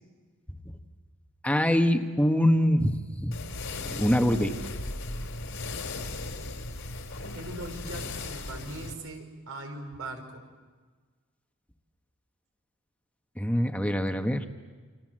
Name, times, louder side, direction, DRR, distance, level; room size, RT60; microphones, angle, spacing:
voice 1, 1.4-3.4 3.8-4.5 13.3-14.5, equal, 5° left, 6 dB, 1.3 m, -24 dB
sound 1, 3.3-8.9, left 2 dB, 75° left, 3.4 m, -37 dB
voice 2, 7.3-10.5, right 2 dB, 80° right, 4 dB, 5.0 m, -40 dB
29.0 x 26.5 x 7.6 m, 1.5 s
head